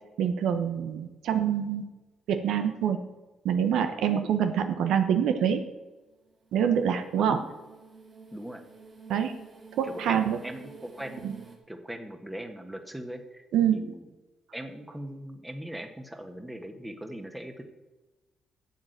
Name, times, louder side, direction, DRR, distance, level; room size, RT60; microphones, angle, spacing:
voice 1, 0.2-1.8 2.3-3.0 3.4-5.6 6.5-7.4 9.1-9.3 9.8-10.4 11.2-11.3 13.5-13.8, right 8 dB, 80° right, 7 dB, 1.1 m, -25 dB
sound 1, 6.1-11.6, right 4 dB, 45° right, 2.4 m, -50 dB
voice 2, 7.1-7.5 8.3-8.6 9.8-13.4 13.7-14.1 14.5-17.6, right 1 dB, 10° right, 5 dB, 1.6 m, -40 dB
9.6 x 7.7 x 8.0 m, 1.1 s
cardioid pair, 90°, 0 cm